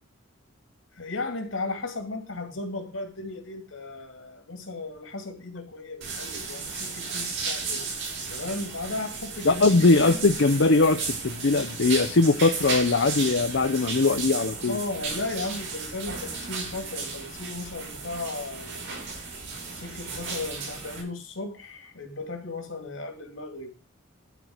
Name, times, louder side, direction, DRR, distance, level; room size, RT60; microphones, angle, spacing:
voice 1, 1.0-7.8 8.3-10.2 14.5-18.8 19.7-23.7, left 2 dB, 80° left, 5 dB, 2.7 m, -35 dB
sound 1, 6.0-21.0, right 4 dB, 70° right, 5.2 m, -34 dB
voice 2, 9.4-14.8, left 3 dB, 60° left, 8 dB, 0.7 m, -21 dB
12.0 x 4.6 x 7.9 m, 0.36 s
head